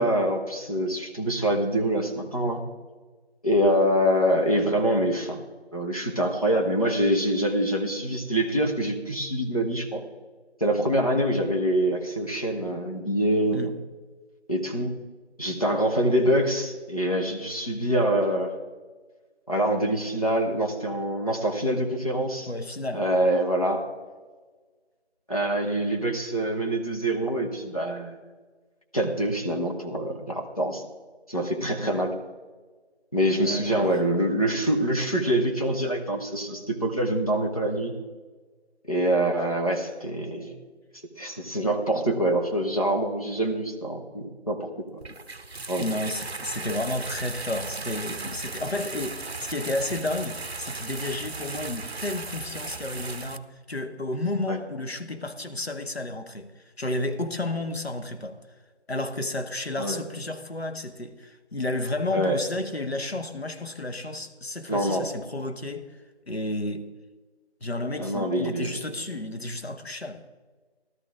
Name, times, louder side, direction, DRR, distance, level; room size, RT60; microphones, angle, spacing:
voice 1, 0.0-2.6 3.4-5.4 5.7-10.0 10.6-13.6 14.5-14.9 15.4-18.5 19.5-22.5 22.9-23.8 25.3-28.2 28.9-30.8 31.3-32.1 33.1-37.9 38.8-40.5 41.2-45.0 45.7-45.8 54.5-54.6 59.8-60.0 62.1-62.4 64.7-65.1 68.0-68.7, right 1 dB, 35° left, 1.2 m, -25 dB
voice 2, 22.5-23.1 31.8-32.1 33.4-34.0 45.8-58.4 58.9-65.9 66.3-66.9 67.6-70.2, left 2 dB, 65° left, 1.2 m, -32 dB
sound 1, 45.0-53.4, right 3 dB, 65° right, 0.8 m, -36 dB
14.5 x 12.5 x 3.6 m
figure-of-eight pair, 175°, 33 cm